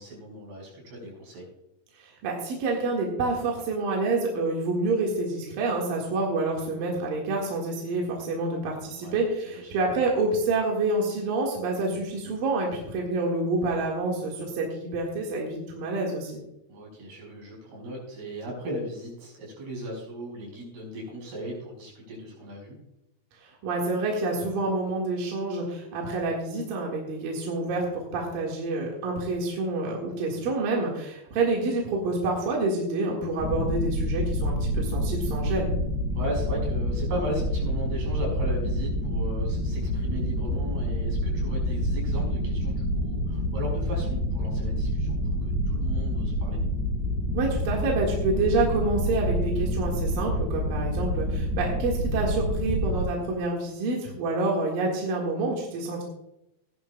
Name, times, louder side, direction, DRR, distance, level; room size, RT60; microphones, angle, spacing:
voice 1, 0.0-1.5 9.0-9.2 9.5-9.7 16.7-22.8 30.3-30.5 36.1-46.6, equal, 90° right, -2 dB, 6.8 m, -37 dB
voice 2, 2.0-16.3 23.6-35.7 47.3-56.0, right 2 dB, 65° right, -2 dB, 3.4 m, -28 dB
sound 1, 33.4-53.0, equal, ahead, 4.2 m, -27 dB
17.5 x 11.0 x 2.3 m, 0.87 s
omnidirectional pair, 4.5 m